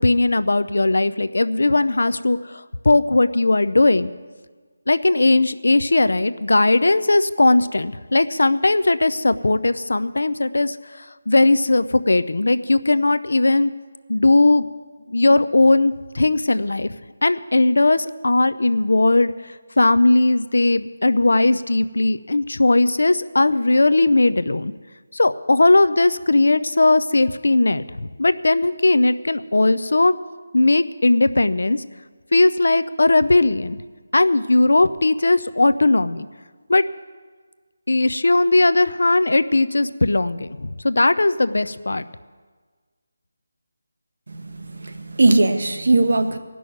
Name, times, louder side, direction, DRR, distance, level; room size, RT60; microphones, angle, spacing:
voice 1, 0.0-4.1 4.9-13.7 14.1-14.7 15.1-16.9 17.2-24.7 25.1-30.1 30.5-31.8 32.3-33.8 34.1-36.3 36.7-36.8 37.9-42.1, left 2 dB, 85° left, 13 dB, 0.6 m, -18 dB
voice 2, 44.3-46.4, right 2 dB, 65° right, 7 dB, 1.2 m, -19 dB
17.5 x 6.2 x 9.3 m, 1.5 s
figure-of-eight pair, 175°, 0 cm